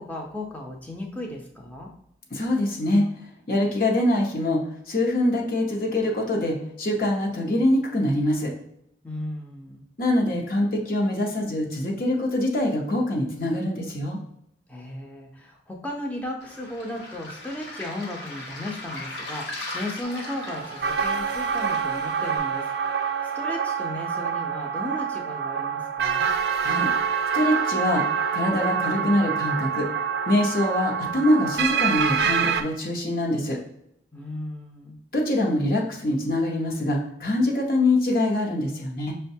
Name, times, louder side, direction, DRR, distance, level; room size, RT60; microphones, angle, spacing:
voice 1, 0.0-1.9 9.0-9.8 14.7-22.7 23.3-26.3 34.1-35.0, left 1 dB, 10° left, 0 dB, 0.6 m, -35 dB
voice 2, 2.3-3.0 3.5-4.6 4.9-8.5 10.0-14.2 26.6-26.9 27.3-28.0 28.3-29.9 30.3-33.6 35.1-39.1, left 1 dB, 55° left, 0 dB, 0.8 m, -24 dB
Waves surf, 16.4-22.4, left 2 dB, 85° left, 0.9 m, -38 dB
sound 1, 20.0-32.6, right 7 dB, 65° right, 0.4 m, -26 dB
6.0 x 2.2 x 2.7 m, 0.75 s
head